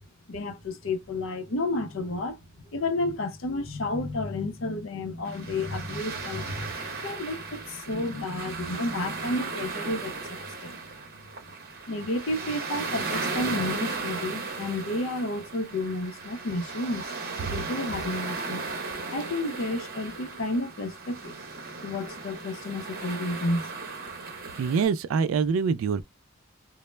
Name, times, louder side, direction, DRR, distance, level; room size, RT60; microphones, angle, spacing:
voice 1, 0.3-10.8 11.9-17.1 17.4-18.6 19.1-21.3 21.8-23.7, left 2 dB, 70° left, 0.6 m, -31 dB
sound 1, 5.2-24.9, right 4 dB, 50° right, 0.7 m, -36 dB
voice 2, 24.6-26.0, right 5 dB, 80° right, 0.3 m, -25 dB
2.1 x 2.0 x 3.0 m
head